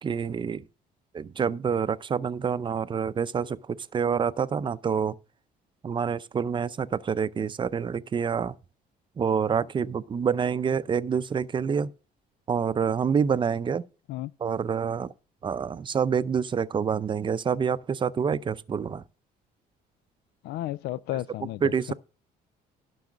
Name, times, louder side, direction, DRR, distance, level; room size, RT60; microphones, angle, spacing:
voice 1, 0.0-0.6 1.1-5.2 5.8-8.5 9.2-11.9 12.5-13.8 14.4-15.1 15.4-19.0 21.6-21.9, right 6 dB, 30° right, 0.6 m, -27 dB
voice 2, 20.4-21.9, left 15 dB, 75° left, 0.4 m, -33 dB
12.0 x 5.5 x 6.1 m
cardioid pair, 110°, 17 cm